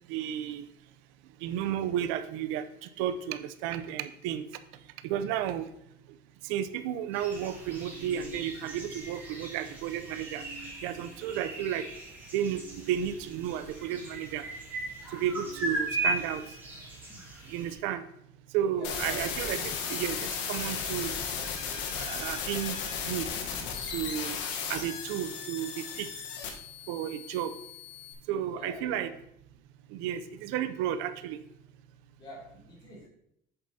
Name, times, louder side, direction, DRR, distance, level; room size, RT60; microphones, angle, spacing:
voice 1, 0.1-0.7 1.4-4.5 5.0-5.7 6.4-11.9 12.3-12.6 12.9-14.4 15.1-16.4 17.5-18.0 18.5-21.1 21.7-23.3 23.8-24.4 24.7-26.1 26.9-27.5 28.3-29.1 29.9-31.4, right 10 dB, 80° right, 11 dB, 0.6 m, -33 dB
sound 1, 7.1-17.8, right 1 dB, 10° right, 2.5 m, -38 dB
sound 2, 18.8-28.1, left 6 dB, 70° left, 1.2 m, -35 dB
voice 2, 18.8-19.7 28.5-29.1 32.2-33.1, equal, 25° left, -4 dB, 2.6 m, -46 dB
8.0 x 7.1 x 2.7 m, 0.75 s
cardioid pair, 170°, 19 cm